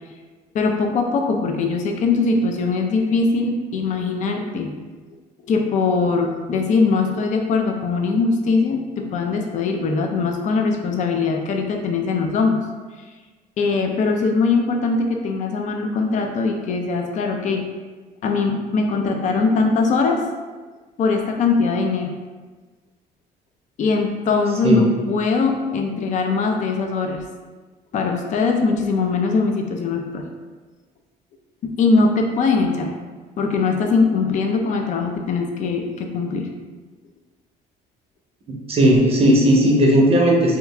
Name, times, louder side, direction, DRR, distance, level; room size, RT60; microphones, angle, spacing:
voice 1, 0.5-4.7 5.5-12.6 13.6-17.6 18.2-20.3 21.0-22.1 23.8-27.2 27.9-30.3 31.6-32.9 33.4-36.5, left 4 dB, 45° left, 3 dB, 0.4 m, -21 dB
voice 2, 38.5-40.6, equal, 35° right, -1 dB, 0.6 m, -16 dB
2.9 x 2.3 x 3.3 m, 1.3 s
cardioid pair, 110°, 17 cm